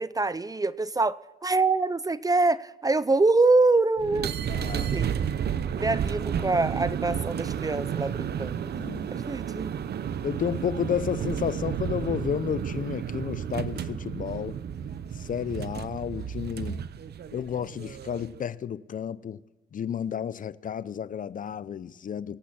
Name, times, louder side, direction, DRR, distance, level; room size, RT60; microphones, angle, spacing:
voice 1, 0.0-4.3 4.7-5.1 5.7-8.6 9.1-9.7, right 3 dB, 20° right, 0.5 m, -25 dB
sound 1, 4.0-18.4, right 8 dB, 55° right, 0.8 m, -32 dB
voice 2, 4.5-4.9 8.7-9.1 10.2-14.6 15.1-16.8 17.3-19.4 19.7-22.4, left 8 dB, 45° left, 0.6 m, -32 dB
24.0 x 8.3 x 4.2 m
cardioid pair, 90°, 20 cm